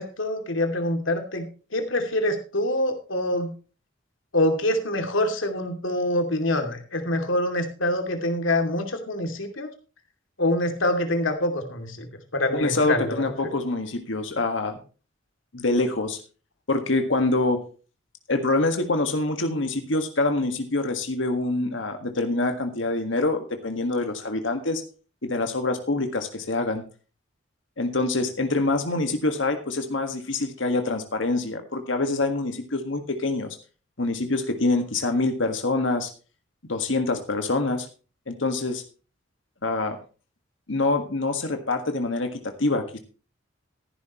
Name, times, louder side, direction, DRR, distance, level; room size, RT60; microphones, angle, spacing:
voice 1, 0.0-3.5 4.3-9.7 10.4-12.1 12.3-13.2, left 1 dB, 90° left, 5 dB, 2.7 m, -25 dB
voice 2, 12.5-14.8 15.5-16.2 16.7-17.6 18.3-24.8 25.2-26.8 27.8-33.6 34.0-36.1 36.7-37.9 38.3-38.8 39.6-40.0 40.7-43.0, left 2 dB, 75° left, 6 dB, 1.7 m, -25 dB
14.0 x 11.0 x 3.0 m, 0.35 s
head